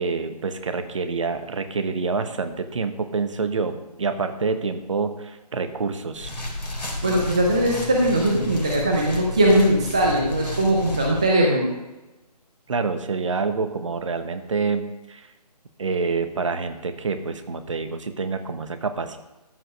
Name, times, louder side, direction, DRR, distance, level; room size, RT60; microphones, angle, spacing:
voice 1, 0.0-6.3 12.7-15.3 15.8-19.2, right 4 dB, 50° right, 9 dB, 1.1 m, -27 dB
sound 1, 6.1-11.3, left 1 dB, 80° left, 3.6 m, -32 dB
voice 2, 7.0-11.7, right 1 dB, 10° right, -1 dB, 0.4 m, -20 dB
13.5 x 5.1 x 6.4 m, 1.0 s
figure-of-eight pair, 155°, 21 cm